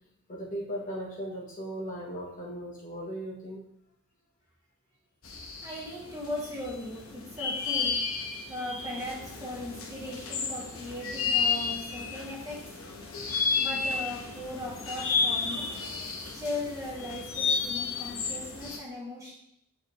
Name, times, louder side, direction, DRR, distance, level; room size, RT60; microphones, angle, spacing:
voice 1, 0.3-3.6, equal, 35° left, -3 dB, 1.2 m, -37 dB
sound 1, 5.2-18.8, left 5 dB, 65° left, 1.1 m, -32 dB
voice 2, 5.6-8.0 8.5-12.6 13.6-15.7 16.3-19.3, left 1 dB, 15° right, -4 dB, 1.6 m, -38 dB
7.3 x 5.2 x 3.1 m, 0.75 s
head